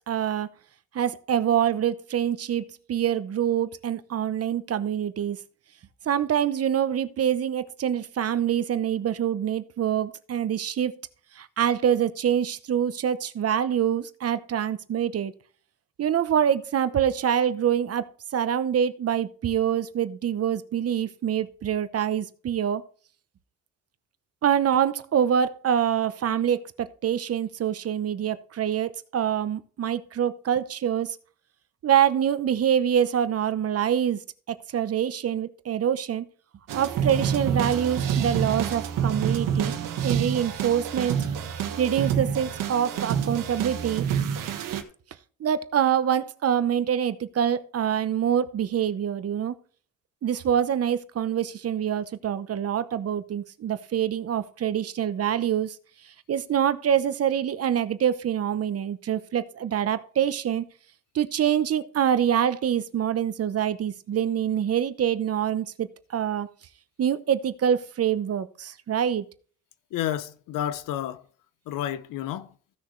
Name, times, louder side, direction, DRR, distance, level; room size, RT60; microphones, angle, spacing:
voice 1, 0.1-0.5 0.9-5.4 6.1-10.9 11.4-15.3 16.0-18.1 18.3-22.8 24.4-31.2 31.8-34.2 34.5-36.2 36.7-39.8 40.0-41.2 41.8-44.1 45.4-49.5 50.2-55.8 56.3-60.6 61.1-66.5 67.0-69.2, right 9 dB, 50° right, 0.9 m, -25 dB
sound 1, 36.7-44.8, right 8 dB, 85° right, 1.5 m, -27 dB
voice 2, 69.9-71.2 71.7-72.5, left 11 dB, 85° left, 0.8 m, -30 dB
15.5 x 6.5 x 3.2 m
cardioid pair, 100°, 32 cm